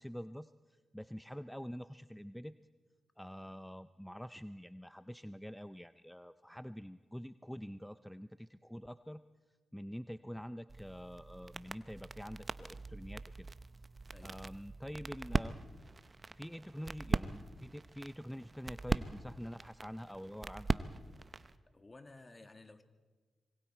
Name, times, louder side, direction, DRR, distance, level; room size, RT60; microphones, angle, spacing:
voice 1, 0.0-2.5 3.2-9.2 9.7-13.5 14.2-15.5 16.3-20.9, equal, 5° left, 0.6 m, -46 dB
sound 1, 10.7-21.6, right 3 dB, 35° right, 0.8 m, -40 dB
voice 2, 14.1-14.4 21.7-22.8, left 2 dB, 30° left, 1.9 m, -55 dB
25.5 x 23.0 x 4.5 m
supercardioid pair, 45°, 0 cm